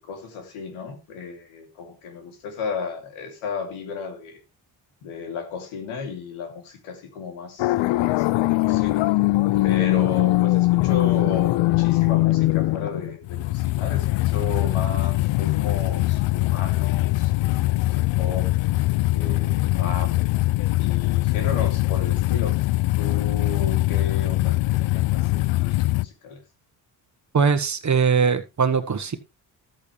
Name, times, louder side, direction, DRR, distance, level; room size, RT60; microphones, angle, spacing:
voice 1, 0.0-4.4 5.0-9.0 9.6-18.5 19.1-20.1 20.8-22.6 23.0-26.4, left 5 dB, 85° left, 5 dB, 2.8 m, -34 dB
sound 1, 7.6-26.1, left 19 dB, 65° left, 0.5 m, -22 dB
voice 2, 27.3-29.2, right 6 dB, 35° right, 10 dB, 1.3 m, -21 dB
13.5 x 8.4 x 3.2 m, 0.26 s
supercardioid pair, 65°, 48 cm